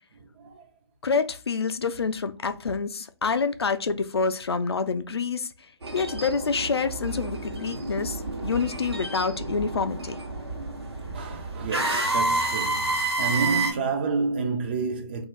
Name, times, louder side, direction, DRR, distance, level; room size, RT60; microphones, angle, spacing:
voice 1, 0.4-0.7 11.1-15.2, right 4 dB, 25° right, 0.3 m, -29 dB
voice 2, 1.0-5.5 5.9-10.2, left 5 dB, 75° left, 0.4 m, -27 dB
sound 1, 5.8-13.7, right 2 dB, 75° right, 0.9 m, -29 dB
2.7 x 2.4 x 3.0 m
figure-of-eight pair, 135°, 13 cm